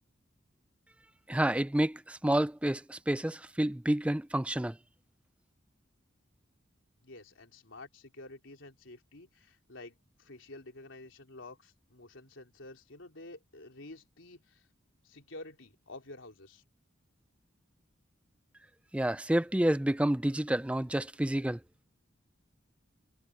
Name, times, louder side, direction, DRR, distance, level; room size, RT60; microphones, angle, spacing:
voice 1, 1.3-4.8 18.9-21.6, right 1 dB, 5° right, 0.4 m, -29 dB
voice 2, 7.0-14.7 15.0-16.6, left 2 dB, 80° left, 3.5 m, -50 dB
head